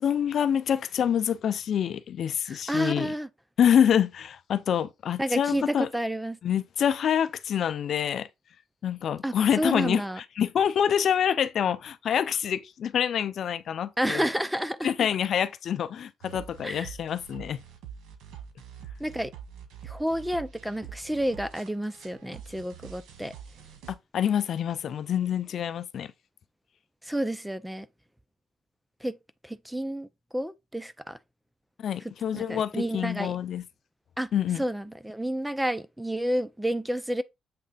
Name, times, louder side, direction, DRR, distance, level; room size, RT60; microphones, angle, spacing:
voice 1, 0.0-3.1 3.6-5.9 6.4-8.3 8.8-14.3 14.8-17.6 24.1-26.1 31.8-33.6 34.3-34.6, left 9 dB, 65° left, 0.5 m, -26 dB
voice 2, 2.5-3.3 5.2-6.4 9.2-10.2 14.0-14.9 16.6-16.9 19.0-19.3 19.8-23.3 27.0-27.9 29.0-29.2 29.4-30.1 30.3-31.2 32.3-33.3 34.2-34.3 34.6-37.2, right 1 dB, 5° right, 0.5 m, -30 dB
sound 1, 16.2-23.9, right 8 dB, 85° right, 1.4 m, -45 dB
7.6 x 3.3 x 4.1 m
cardioid pair, 90°, 0 cm